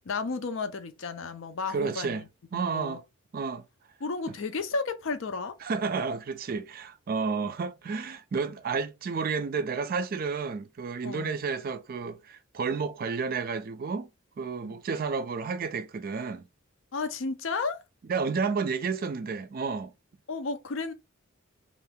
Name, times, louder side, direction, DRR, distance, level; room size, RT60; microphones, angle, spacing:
voice 1, 0.1-2.3 2.5-3.0 4.0-5.6 7.4-7.5 11.0-11.4 14.6-14.8 16.9-17.8 20.3-20.9, left 4 dB, 65° left, 0.5 m, -33 dB
voice 2, 1.7-2.2 2.5-3.0 3.3-3.6 5.6-14.1 14.4-16.5 18.1-19.9, right 5 dB, 45° right, 0.3 m, -31 dB
2.7 x 2.5 x 3.5 m
head